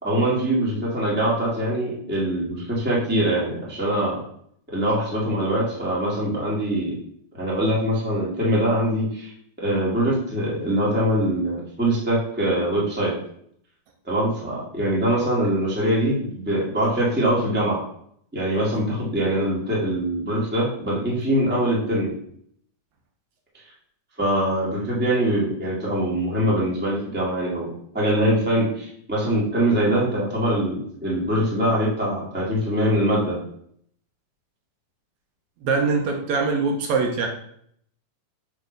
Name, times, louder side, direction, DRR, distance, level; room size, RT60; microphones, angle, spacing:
voice 1, 0.0-4.2 4.7-6.9 7.4-9.3 9.6-13.1 14.1-17.8 18.3-22.1 24.2-27.7 27.9-33.4, right 1 dB, 5° right, -5 dB, 1.1 m, -23 dB
voice 2, 35.6-37.3, right 4 dB, 75° right, 2 dB, 2.0 m, -22 dB
6.3 x 3.2 x 5.1 m, 0.67 s
omnidirectional pair, 3.5 m